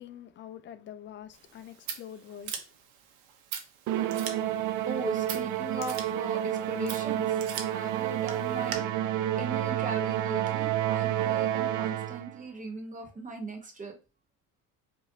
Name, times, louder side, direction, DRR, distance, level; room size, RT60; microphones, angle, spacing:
voice 1, 0.0-2.6, left 10 dB, 35° left, 0.4 m, -45 dB
Scissors, 1.3-8.8, right 7 dB, 80° right, 0.9 m, -42 dB
Musical instrument, 3.9-12.4, right 12 dB, 60° right, 0.5 m, -30 dB
voice 2, 4.9-7.4 7.7-8.8 9.4-14.0, right 2 dB, 20° right, 1.0 m, -38 dB
4.8 x 2.7 x 2.7 m
cardioid pair, 115°, 35 cm